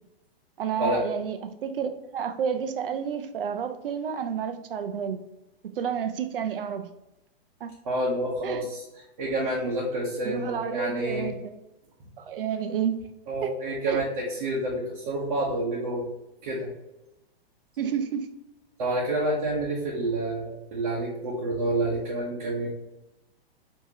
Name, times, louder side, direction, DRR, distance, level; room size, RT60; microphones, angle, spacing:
voice 1, 0.6-5.2 5.8-6.9 7.6-7.7 8.4-8.7 10.2-11.5 12.2-13.0 13.4-13.5 13.9-14.0 17.8-18.3, right 7 dB, 60° right, 0.6 m, -30 dB
voice 2, 7.8-8.8 9.2-11.3 13.3-16.0 16.4-16.7 18.8-22.7, right 1 dB, 40° right, 0.9 m, -28 dB
4.8 x 2.9 x 2.8 m
hypercardioid pair, 170°, 31 cm